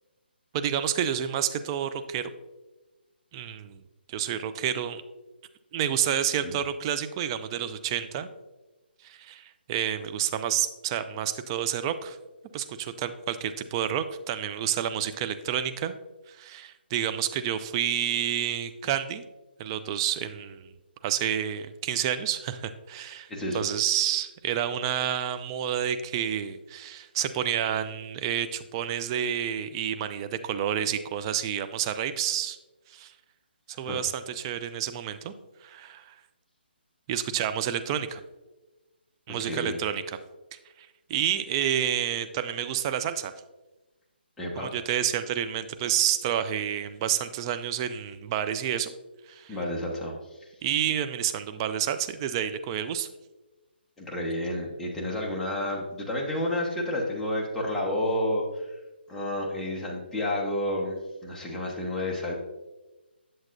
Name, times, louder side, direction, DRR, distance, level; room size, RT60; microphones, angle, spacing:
voice 1, 0.5-2.3 3.3-3.8 4.1-5.0 5.7-8.3 9.0-12.2 12.5-15.9 16.3-19.2 19.6-20.7 21.0-23.3 23.5-32.6 32.9-33.1 33.8-35.3 35.6-36.1 37.1-38.2 39.3-40.2 40.5-43.3 44.6-48.9 49.3-49.6 50.6-53.1, right 10 dB, 25° right, 10 dB, 0.3 m, -29 dB
voice 2, 23.3-23.6 33.9-34.0 39.3-39.8 44.4-44.7 49.5-50.5 54.0-58.7 59.1-61.0 61.2-62.3, left 1 dB, 5° left, -3 dB, 1.1 m, -30 dB
8.1 x 7.4 x 2.6 m, 1.1 s
hypercardioid pair, 155°, 6 cm